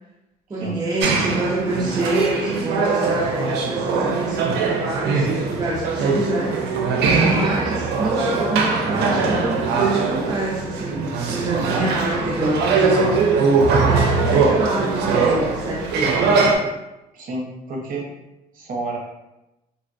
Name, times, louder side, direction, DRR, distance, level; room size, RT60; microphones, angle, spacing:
voice 1, 0.5-6.6 7.3-13.3 13.8-16.7, right 1 dB, 25° right, -5 dB, 0.5 m, -27 dB
sound 1, 1.0-16.6, right 4 dB, 75° right, 0.5 m, -21 dB
voice 2, 17.1-18.1 18.5-19.0, right 2 dB, 55° right, -1 dB, 0.8 m, -30 dB
3.3 x 2.1 x 2.5 m, 0.95 s
cardioid pair, 110°, 17 cm